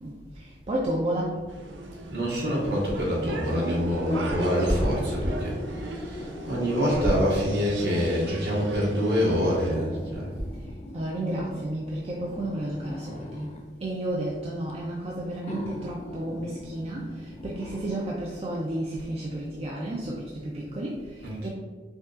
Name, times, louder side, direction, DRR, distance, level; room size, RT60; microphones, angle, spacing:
voice 1, 0.0-1.4 10.9-13.5 13.8-21.5, right 1 dB, 35° right, -4 dB, 0.4 m, -32 dB
sound 1, 1.5-9.8, right 2 dB, 85° right, 0.5 m, -39 dB
voice 2, 2.1-10.3 21.2-21.5, equal, 60° right, -5 dB, 1.2 m, -26 dB
sound 2, 4.1-7.7 8.6-8.7 9.8-13.7 14.7-14.8 15.4-18.1 18.5-18.6, left 1 dB, 35° left, 0.4 m, -39 dB
5.3 x 2.3 x 2.4 m, 1.3 s
head